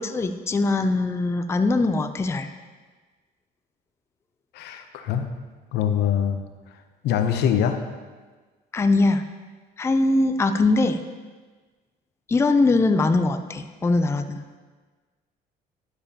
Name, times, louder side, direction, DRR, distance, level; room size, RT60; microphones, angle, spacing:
voice 1, 0.0-2.5 8.7-9.2 9.8-11.0 12.3-14.4, left 3 dB, 15° left, 8 dB, 0.4 m, -21 dB
voice 2, 4.5-5.3 5.7-6.4 7.0-7.8, left 9 dB, 80° left, 7 dB, 0.7 m, -23 dB
11.0 x 6.8 x 2.8 m, 1.4 s
cardioid pair, 110°, 17 cm